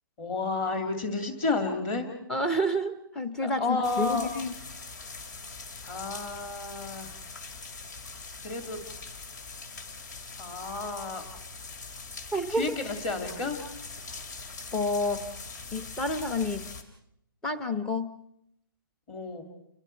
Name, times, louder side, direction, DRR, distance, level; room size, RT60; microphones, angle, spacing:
voice 1, 0.2-2.1 3.4-4.3 5.8-7.1 8.4-8.8 10.4-11.2 12.5-13.6 19.1-19.4, left 3 dB, 20° left, 5 dB, 2.6 m, -31 dB
voice 2, 2.3-4.6 12.3-12.7 14.7-15.2 15.7-16.7 17.4-18.2, left 1 dB, 5° left, 11 dB, 0.8 m, -29 dB
sound 1, 3.8-16.8, left 4 dB, 50° left, 2.9 m, -42 dB
29.5 x 21.5 x 4.6 m, 0.74 s
hypercardioid pair, 170°, 12 cm